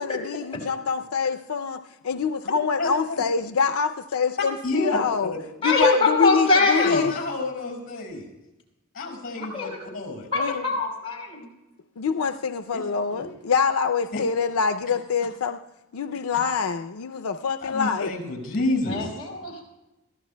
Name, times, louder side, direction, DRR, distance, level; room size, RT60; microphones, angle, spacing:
voice 1, 0.0-5.3 5.6-7.1 10.3-10.7 12.0-15.6 15.9-18.1, left 5 dB, 85° left, 7 dB, 0.5 m, -25 dB
voice 2, 2.8-3.2 4.6-5.0 6.8-8.2 8.9-10.3 12.7-13.2 14.1-14.2 17.6-19.1, left 2 dB, 40° left, 1 dB, 5.7 m, -29 dB
voice 3, 5.6-7.0 9.4-9.8 10.3-11.4 18.9-19.6, left 3 dB, 25° left, -1 dB, 5.0 m, -23 dB
22.5 x 14.5 x 2.2 m, 1.0 s
head